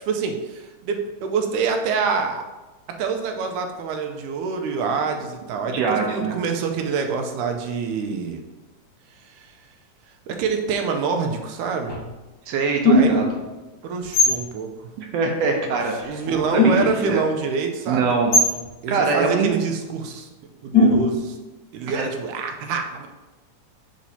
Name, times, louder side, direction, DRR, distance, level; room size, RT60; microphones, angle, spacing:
voice 1, 0.0-2.4 3.0-8.4 9.4-9.5 10.3-12.0 12.9-13.2 13.8-14.7 16.1-18.1 18.8-20.3 20.6-21.4 21.7-23.1, right 5 dB, 90° right, 4 dB, 2.2 m, -26 dB
voice 2, 5.7-6.3 12.5-13.3 15.0-17.2 17.9-18.3 18.9-19.6 21.9-22.0, right 4 dB, 70° right, 2 dB, 1.6 m, -23 dB
sound 1, 11.9-12.1 12.8-13.4 14.0-14.4 16.0-16.1 16.3-17.1 18.3-18.7 20.7-21.3, left 2 dB, 65° left, 1.2 m, -18 dB
7.3 x 6.0 x 2.8 m, 1.1 s
omnidirectional pair, 3.5 m